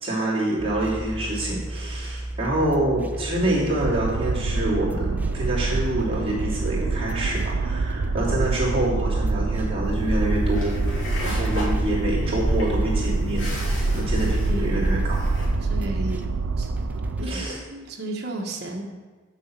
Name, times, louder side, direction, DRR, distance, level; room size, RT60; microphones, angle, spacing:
voice 1, 0.0-13.5 13.9-15.2 17.2-17.6, right 1 dB, 30° right, -7 dB, 2.9 m, -26 dB
sound 1, 0.6-17.5, right 1 dB, 10° right, 0.4 m, -33 dB
sound 2, 3.8-17.3, right 4 dB, 90° right, 0.4 m, -27 dB
sound 3, 9.8-15.5, equal, 85° left, 2.8 m, -28 dB
voice 2, 14.2-14.9 15.6-16.2 16.6-16.7 17.2-18.8, right 1 dB, 50° right, 0 dB, 1.4 m, -33 dB
7.3 x 5.9 x 7.6 m, 1.3 s
head